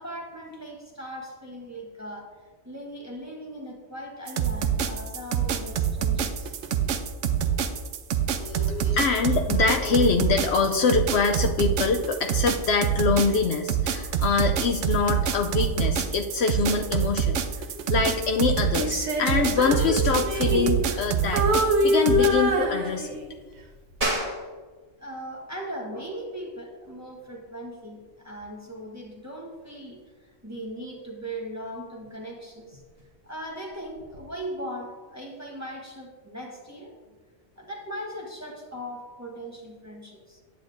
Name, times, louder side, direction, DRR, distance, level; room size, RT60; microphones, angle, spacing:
voice 1, 0.0-2.4 2.6-6.5 8.7-9.1 19.3-19.4 22.6-22.7 25.0-32.8 33.2-37.0 37.6-40.4, equal, 15° right, -2 dB, 1.1 m, -39 dB
sound 1, 4.3-22.3, right 8 dB, 80° right, 1.0 m, -26 dB
voice 2, 8.4-23.2, left 5 dB, 65° left, 4 dB, 0.8 m, -25 dB
Female singing, 18.8-21.1 21.3-23.4 23.9-24.1, equal, 65° right, 1.2 m, -25 dB
sound 2, 24.0-34.2, right 1 dB, 30° right, 1.4 m, -39 dB
9.5 x 9.0 x 2.6 m, 1.4 s
omnidirectional pair, 1.3 m